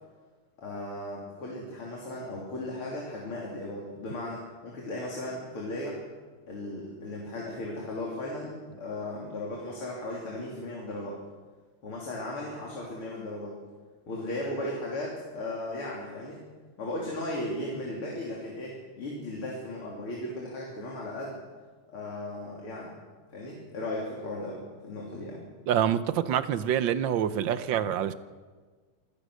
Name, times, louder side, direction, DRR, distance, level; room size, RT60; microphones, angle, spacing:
voice 1, 0.6-6.0 6.5-11.2 11.8-13.5 14.1-16.4 16.8-21.4 21.9-23.0 23.3-25.4, left 1 dB, 75° left, -3 dB, 4.2 m, -36 dB
voice 2, 25.7-28.1, right 9 dB, 65° right, 13 dB, 1.5 m, -26 dB
26.0 x 16.5 x 6.4 m, 1.4 s
omnidirectional pair, 2.4 m